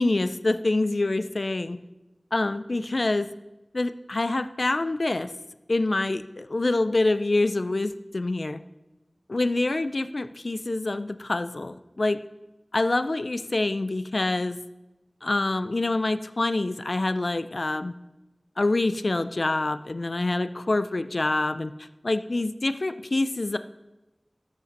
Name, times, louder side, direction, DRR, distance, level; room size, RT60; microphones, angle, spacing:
voice 1, 0.0-1.8 2.3-3.3 3.7-5.3 5.7-8.6 9.3-12.2 12.7-14.6 15.2-17.9 18.6-23.6, left 2 dB, 75° left, 12 dB, 0.4 m, -26 dB
13.0 x 5.1 x 5.3 m, 1.0 s
wide cardioid pair, 40°, 0 cm